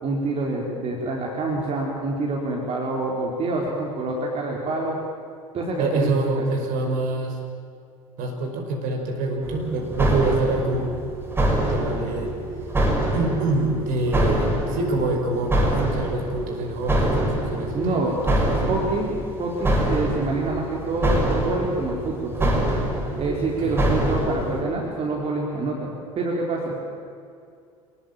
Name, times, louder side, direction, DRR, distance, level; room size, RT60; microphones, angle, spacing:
voice 1, 0.0-5.0 5.5-6.1 17.7-19.1 19.4-22.5 23.2-26.8, right 2 dB, 35° right, -1 dB, 4.2 m, -26 dB
voice 2, 5.8-7.4 8.2-10.9 11.6-12.3 13.1-18.7 23.6-23.8, right 2 dB, 50° right, 2 dB, 5.5 m, -26 dB
sound 1, 9.4-24.6, right 1 dB, 15° right, 5.9 m, -25 dB
27.0 x 19.5 x 9.1 m, 2.4 s
figure-of-eight pair, 70°, 18 cm